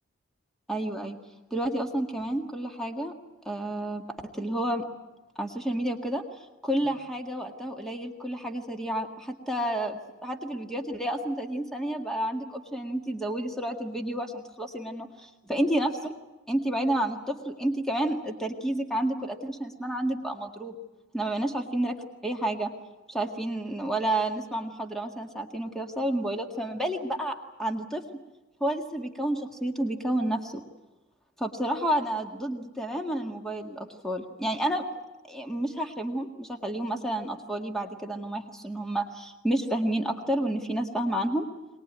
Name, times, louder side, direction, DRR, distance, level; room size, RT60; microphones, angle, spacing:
voice 1, 0.7-1.2 1.5-3.1 3.5-4.0 4.4-4.9 5.4-6.2 6.6-15.9 16.5-20.8 21.1-22.0 22.2-22.7 23.1-28.0 28.6-30.6 31.4-34.9 35.3-41.5, right 1 dB, ahead, 3 dB, 1.8 m, -30 dB
23.0 x 20.5 x 9.5 m, 1.1 s
head